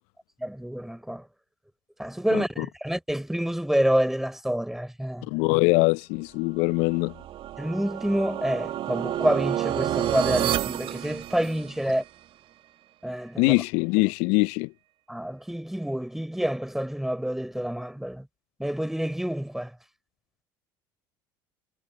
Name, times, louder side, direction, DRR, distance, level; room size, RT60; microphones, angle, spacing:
voice 1, 0.4-1.2 2.0-5.2 7.6-12.0 13.0-13.5 15.1-18.3 18.6-19.7, equal, 5° right, 4.3 m, -28 dB
voice 2, 2.3-2.7 5.2-7.1 13.4-14.7, left 28 dB, 65° left, 0.8 m, -23 dB
sound 1, 6.7-11.9, right 12 dB, 50° right, 2.4 m, -30 dB
hypercardioid pair, 65°, 12 cm